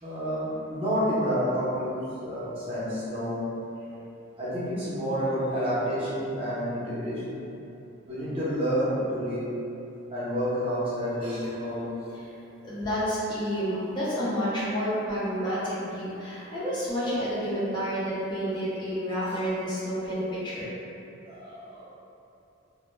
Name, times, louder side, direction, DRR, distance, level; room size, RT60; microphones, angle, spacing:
voice 1, 0.0-3.5 4.4-7.4 8.1-9.5 10.1-12.0 17.0-17.1 19.3-19.5 21.2-21.9, equal, 30° right, -10 dB, 0.6 m, -29 dB
voice 2, 12.6-20.6, equal, 25° left, -10 dB, 0.5 m, -29 dB
2.1 x 2.0 x 3.0 m, 2.8 s
head